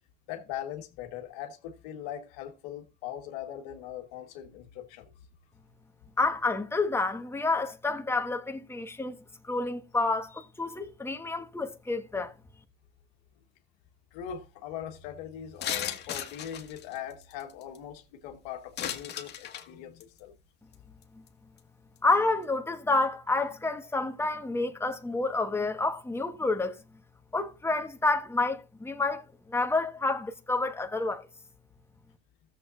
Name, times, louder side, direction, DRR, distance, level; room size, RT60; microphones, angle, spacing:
voice 1, 0.3-5.1 14.1-20.3, left 10 dB, 85° left, 1.4 m, -40 dB
voice 2, 6.2-9.2 9.4-12.3 22.0-26.7 27.3-29.2 29.5-31.3, left 3 dB, 10° left, 1.4 m, -29 dB
sound 1, 15.6-17.8 18.8-19.7 20.0-20.2 20.7-20.8 21.0-21.3 21.6-21.7, left 10 dB, 55° left, 1.6 m, -35 dB
15.5 x 7.3 x 2.6 m
supercardioid pair, 75°, 21 cm